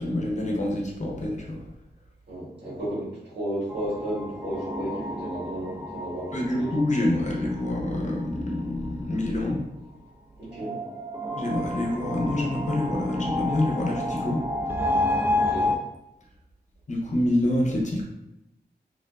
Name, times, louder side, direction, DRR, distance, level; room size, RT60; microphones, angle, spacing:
voice 1, 0.0-1.6 6.3-9.6 11.4-14.8 16.9-18.0, left 1 dB, 45° left, -1 dB, 0.7 m, -27 dB
voice 2, 2.3-6.7 10.4-10.8 15.3-15.8, right 1 dB, 80° right, -8 dB, 1.2 m, -33 dB
sound 1, 3.7-9.0 10.5-15.8, left 1 dB, 10° right, 0.3 m, -30 dB
2.3 x 2.3 x 2.3 m, 0.88 s
cardioid pair, 50°, 18 cm